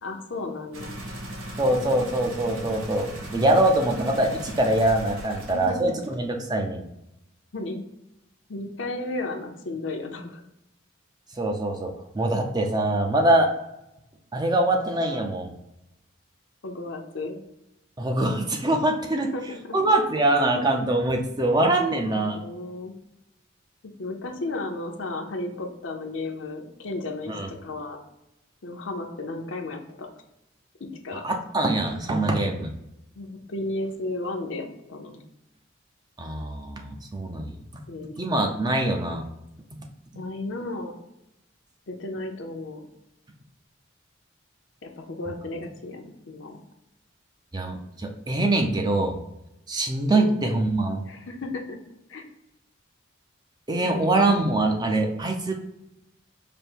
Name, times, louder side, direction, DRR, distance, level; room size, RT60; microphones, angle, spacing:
voice 1, 0.0-1.0 5.5-5.9 7.5-7.8 8.5-10.4 16.6-17.4 19.3-19.7 22.0-22.9 24.0-28.0 28.6-30.1 30.8-31.2 33.2-35.2 37.9-38.5 40.1-40.9 41.9-42.8 44.8-46.6 50.1-50.4 51.1-51.8 52.1-52.3 53.8-54.4, left 2 dB, 65° left, 3 dB, 0.7 m, -34 dB
sound 1, 0.7-5.7 6.0-6.1, right 1 dB, 80° right, 0.9 m, -37 dB
voice 2, 1.6-6.8 11.4-13.5 14.3-15.5 18.0-19.3 19.7-22.4 27.3-27.5 31.2-32.7 36.2-37.6 38.2-39.2 39.8-39.9 47.5-49.2 49.7-51.0 53.7-55.5, right 2 dB, 20° right, 2 dB, 0.5 m, -23 dB
5.1 x 2.1 x 4.3 m, 0.86 s
head